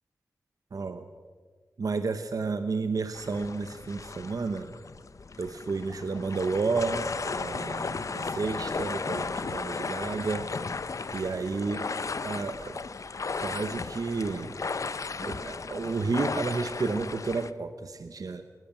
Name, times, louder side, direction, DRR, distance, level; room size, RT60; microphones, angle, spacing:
voice 1, 0.7-1.0 1.8-4.7 5.4-7.1 7.3-10.8 11.1-11.9 12.2-12.8 13.4-14.5 15.2-18.4, right 4 dB, 70° right, 9 dB, 1.1 m, -31 dB
sound 1, 3.1-17.5, left 4 dB, 60° left, 0.7 m, -35 dB
20.5 x 19.5 x 7.5 m, 1.5 s
wide cardioid pair, 100°, 6 cm